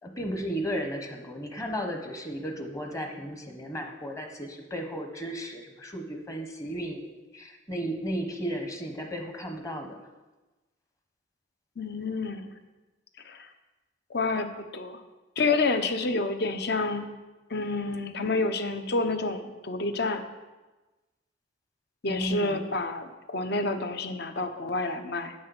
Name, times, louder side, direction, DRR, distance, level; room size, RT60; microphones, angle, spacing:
voice 1, 0.0-10.0 22.0-22.7, equal, 20° left, 4 dB, 1.0 m, -34 dB
voice 2, 11.8-12.5 13.2-13.5 14.1-15.0 15.4-17.0 17.5-20.2 22.0-25.3, left 3 dB, 60° left, 8 dB, 0.9 m, -29 dB
8.9 x 6.4 x 6.9 m, 1.2 s
head